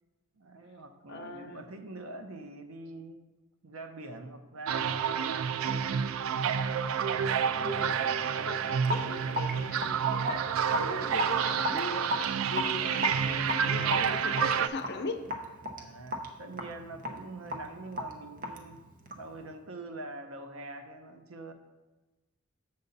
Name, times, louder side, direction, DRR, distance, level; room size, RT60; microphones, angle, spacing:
voice 1, 0.3-3.2 3.6-6.2 15.8-18.8 19.1-21.5, right 2 dB, 90° right, 7 dB, 0.7 m, -44 dB
voice 2, 1.1-1.6 7.6-8.1 8.4-15.2, left 3 dB, 55° left, 6 dB, 0.6 m, -40 dB
sound 1, 4.7-14.7, right 7 dB, 70° right, 0.3 m, -29 dB
sound 2, 6.3-6.4 7.3-12.6, equal, 5° right, 0.7 m, -55 dB
Raindrop / Drip, 8.8-19.4, left 1 dB, 40° right, 0.8 m, -36 dB
6.9 x 6.7 x 4.0 m, 1.1 s
head